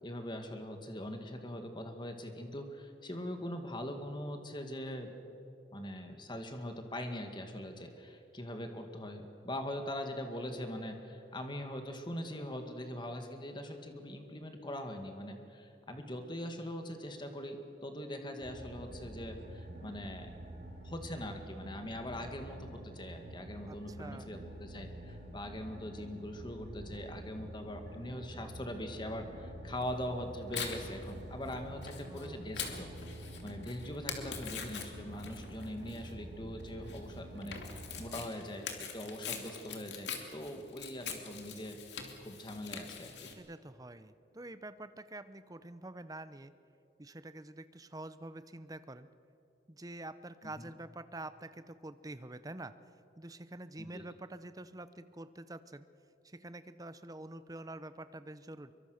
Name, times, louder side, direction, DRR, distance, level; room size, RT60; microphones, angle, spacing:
voice 1, 0.0-5.1 5.7-20.3 20.8-32.9 33.4-41.8 42.2-43.3 50.6-50.7 53.8-54.0, left 1 dB, 25° left, 5 dB, 2.1 m, -42 dB
sound 1, 18.4-38.2, right 1 dB, 55° right, 5.1 m, -48 dB
voice 2, 23.7-24.3 32.0-32.5 43.4-46.5 47.0-49.1 49.7-52.7 53.2-55.8 56.2-58.7, right 2 dB, 20° right, 13 dB, 0.8 m, -47 dB
Tearing, 29.8-43.3, left 6 dB, 75° left, 2.7 m, -44 dB
24.5 x 23.5 x 6.6 m, 2.8 s
head